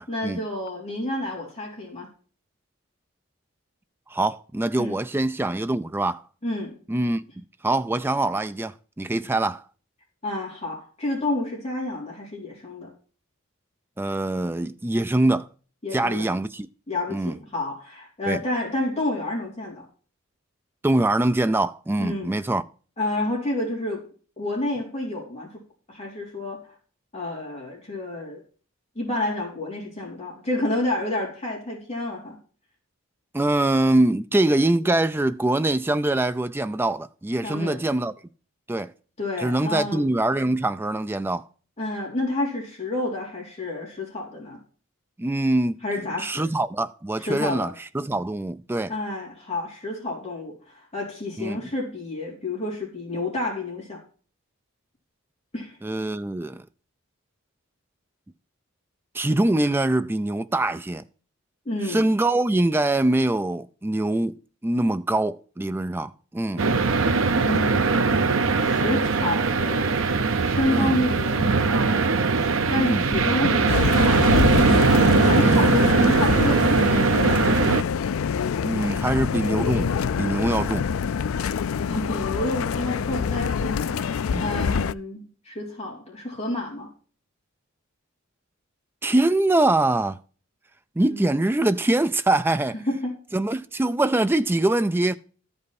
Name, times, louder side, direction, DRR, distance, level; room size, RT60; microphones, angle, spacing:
voice 1, 0.1-2.1 4.8-5.0 6.4-6.8 10.2-12.9 15.8-16.3 16.9-19.8 22.0-22.4 23.0-24.0 24.4-25.6 25.9-26.7 27.1-28.4 29.0-32.4 37.4-37.8 39.2-40.1 41.8-44.6 45.8-46.5 47.2-47.7 48.9-54.0 55.5-55.8 61.7-62.1 67.4-68.1 68.6-69.9 70.4-72.1 72.4-74.7 75.1-77.4 81.8-84.0 84.4-86.9 91.0-91.2 92.9-93.1, left 1 dB, 30° left, 3.8 m, -29 dB
voice 2, 4.1-6.2 6.9-9.6 14.0-15.5 15.9-16.7 17.1-17.4 18.3-18.4 20.8-22.6 33.3-38.1 38.7-38.9 39.4-41.4 45.2-45.8 46.2-48.9 51.4-51.7 55.8-56.6 59.1-61.0 61.8-64.4 64.6-66.7 70.7-71.0 72.8-73.1 75.4-75.7 78.6-79.9 80.2-80.9 84.3-84.5 89.0-90.2 91.0-92.8 93.3-95.2, right 2 dB, 10° right, 0.3 m, -23 dB
sound 1, 66.6-77.8, right 4 dB, 65° right, 0.8 m, -20 dB
sound 2, 73.7-84.9, left 6 dB, 75° left, 0.4 m, -25 dB
13.5 x 5.4 x 4.2 m
head